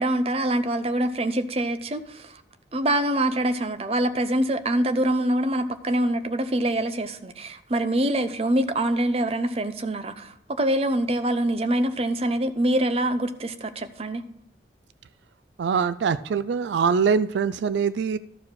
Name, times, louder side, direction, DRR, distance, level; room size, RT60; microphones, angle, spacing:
voice 1, 0.0-2.4 2.7-14.2, right 1 dB, 35° right, 0.6 m, -25 dB
voice 2, 15.6-18.2, right 6 dB, 80° right, 0.3 m, -23 dB
13.0 x 4.8 x 6.2 m
head